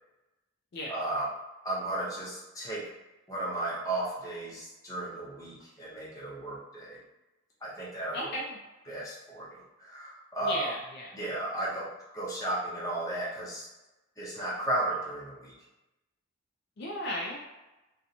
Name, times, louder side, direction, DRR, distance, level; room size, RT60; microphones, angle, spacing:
voice 1, 0.9-1.3 1.6-2.8 3.3-7.0 7.6-8.3 8.9-10.7 11.1-11.8 12.1-13.7 14.2-15.5, right 1 dB, 15° left, -6 dB, 0.6 m, -34 dB
voice 2, 8.1-8.6 10.4-11.1 16.8-17.4, left 1 dB, 55° left, -2 dB, 0.4 m, -35 dB
2.8 x 2.1 x 2.5 m, 1.0 s
head